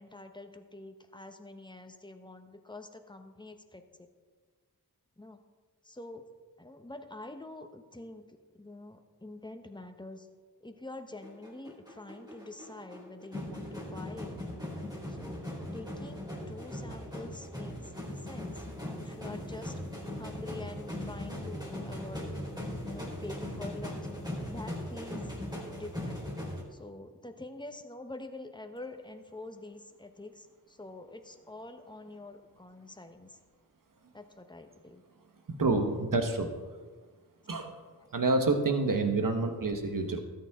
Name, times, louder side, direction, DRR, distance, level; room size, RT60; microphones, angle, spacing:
voice 1, 0.0-4.1 5.2-5.4 5.8-6.2 6.6-8.2 8.5-10.3 10.6-14.3 15.1-17.9 18.2-19.8 20.2-22.3 22.8-24.0 24.4-25.3 25.7-26.3 26.7-33.4 34.1-35.0, left 2 dB, 10° left, 6 dB, 1.1 m, -46 dB
sound 1, 11.2-26.6, left 1 dB, 10° right, 4.0 m, -39 dB
voice 2, 35.6-36.5 37.5-37.7 38.1-40.2, right 3 dB, 60° right, 5 dB, 1.4 m, -28 dB
13.5 x 9.4 x 3.7 m, 1.5 s
wide cardioid pair, 55°, 37 cm